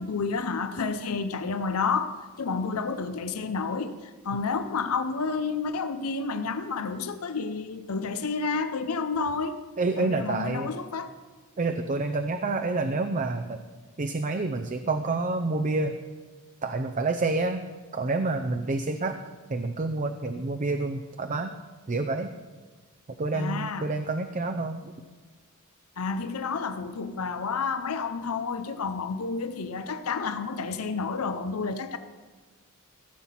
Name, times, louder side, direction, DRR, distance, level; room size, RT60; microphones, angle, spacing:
voice 1, 0.0-9.6 10.0-11.1 23.3-23.9 26.0-32.0, left 4 dB, 90° left, 10 dB, 0.7 m, -30 dB
voice 2, 9.8-10.7 11.6-13.6 14.0-16.0 16.6-19.2 19.5-21.6 21.9-22.3 23.2-24.9, right 3 dB, 35° right, 7 dB, 0.5 m, -28 dB
16.0 x 7.5 x 5.7 m, 1.4 s
head